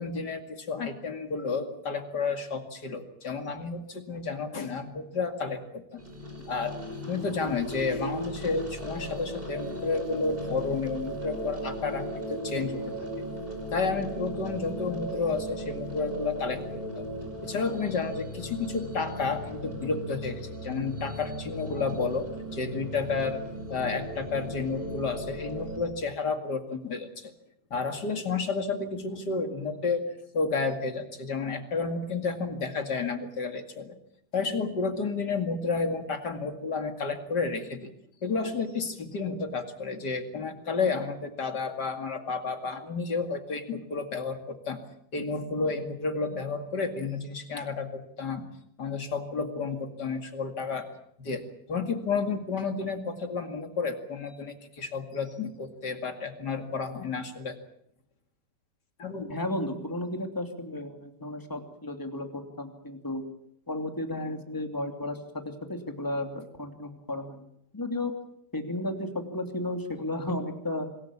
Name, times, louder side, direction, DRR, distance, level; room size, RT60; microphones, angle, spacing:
voice 1, 0.0-6.0 6.5-6.7 7.1-12.9 13.7-17.1 17.4-23.4 23.7-27.3 27.7-33.9 34.3-37.9 38.2-44.8 45.1-48.4 48.8-50.9 51.2-51.4 51.7-57.6 59.0-59.4, left 4 dB, 35° left, 6 dB, 2.1 m, -31 dB
sound 1, 6.0-25.8, equal, 15° right, 5.4 m, -37 dB
voice 2, 59.3-63.2 63.7-65.2 65.4-67.5 67.7-68.1 68.5-70.9, left 1 dB, 5° left, 4 dB, 2.1 m, -33 dB
26.5 x 21.0 x 7.3 m, 0.71 s
omnidirectional pair, 4.3 m